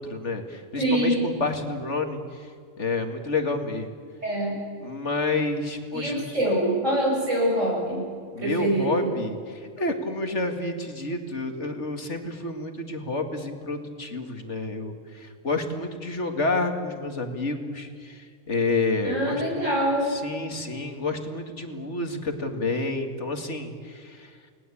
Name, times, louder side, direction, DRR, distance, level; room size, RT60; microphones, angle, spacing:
voice 1, 0.0-2.5 2.8-3.9 4.8-6.4 8.3-19.7 20.1-24.3, left 3 dB, 60° left, 6 dB, 2.4 m, -29 dB
voice 2, 0.8-1.3 4.2-4.5 5.9-8.0 8.4-9.1 19.0-20.1, right 1 dB, 65° right, -2 dB, 8.4 m, -24 dB
30.0 x 20.0 x 8.6 m, 2.1 s
omnidirectional pair, 1.4 m